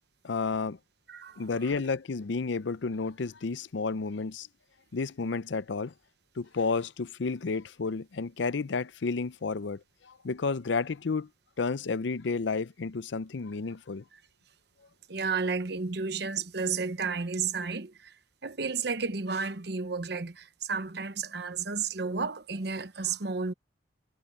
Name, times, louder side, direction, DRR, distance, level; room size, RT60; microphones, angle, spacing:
voice 1, 0.2-0.8 1.4-4.5 4.9-5.9 6.4-11.3 11.6-14.0, left 4 dB, 70° left, 0.6 m, -31 dB
voice 2, 1.1-1.8 15.1-18.1 18.4-23.5, right 5 dB, 60° right, 1.0 m, -32 dB
head